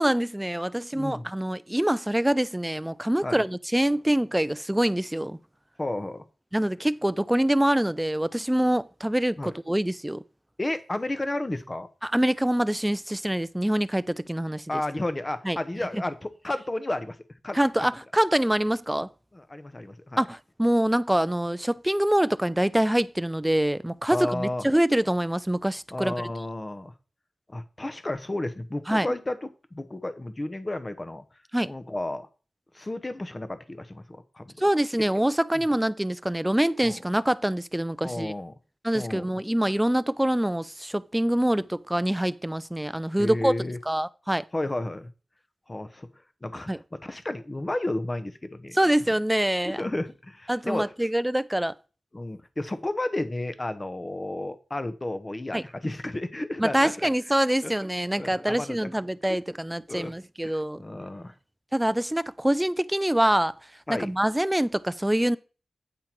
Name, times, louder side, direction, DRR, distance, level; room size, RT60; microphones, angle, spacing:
voice 1, 0.0-5.4 6.5-10.2 12.0-14.6 15.4-15.6 15.9-16.0 17.5-19.1 20.2-26.1 28.9-29.1 31.5-31.7 34.6-38.3 38.8-43.5 43.9-44.4 46.7-46.8 48.7-49.8 50.5-51.7 55.5-55.6 56.6-60.8 61.7-63.5 63.9-65.4, right 1 dB, 10° right, 0.4 m, -25 dB
voice 2, 0.9-1.3 3.2-3.4 5.8-6.2 9.4-9.5 10.6-11.9 14.7-17.2 17.4-17.6 19.3-20.2 24.1-24.7 25.9-26.9 27.5-31.2 31.6-32.3 32.7-34.5 36.8-37.0 38.0-38.5 38.9-39.3 43.2-43.8 44.5-45.1 45.7-46.1 46.4-48.8 49.6-50.9 52.1-57.1 57.6-57.7 58.1-58.8 59.9-60.1 60.4-61.3 63.9-64.1, left 1 dB, 25° left, 1.0 m, -32 dB
8.9 x 5.5 x 4.5 m
wide cardioid pair, 80°, 0 cm